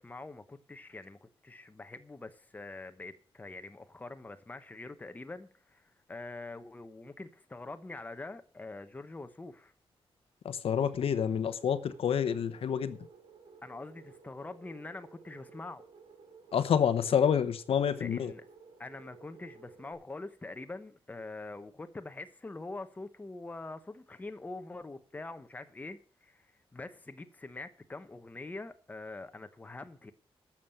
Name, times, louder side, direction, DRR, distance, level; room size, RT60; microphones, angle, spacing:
voice 1, 0.0-9.7 13.6-15.8 17.9-18.4 18.8-30.1, left 2 dB, 15° left, 0.9 m, -44 dB
voice 2, 10.4-13.0 16.5-18.3, left 8 dB, 75° left, 1.0 m, -28 dB
sound 1, 11.1-19.9, right 5 dB, 75° right, 3.1 m, -56 dB
12.5 x 7.3 x 6.4 m
wide cardioid pair, 165°, 10 cm